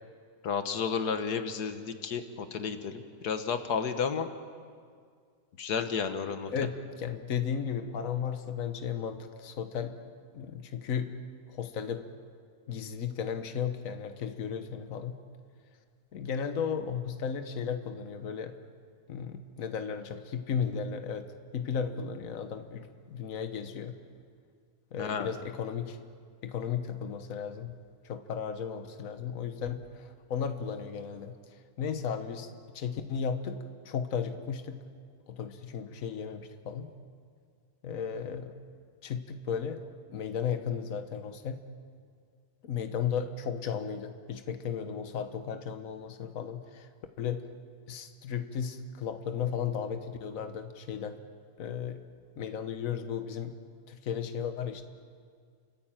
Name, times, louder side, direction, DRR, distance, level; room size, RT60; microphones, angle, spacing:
voice 1, 0.4-4.3 5.6-6.5 25.0-25.3, left 6 dB, 90° left, 8 dB, 1.7 m, -32 dB
voice 2, 6.5-10.0 10.3-11.1 11.5-12.1 12.7-15.2 16.1-18.5 19.1-24.0 24.9-26.0 26.4-27.7 28.0-31.3 31.8-32.5 32.7-34.8 35.3-36.9 37.8-38.5 39.0-39.8 40.1-41.6 42.6-46.9 47.2-47.4 47.9-51.2 51.6-52.0 52.4-53.6 53.9-54.8, left 7 dB, 60° left, 8 dB, 1.6 m, -35 dB
30.0 x 15.0 x 9.0 m, 2.1 s
omnidirectional pair, 1.7 m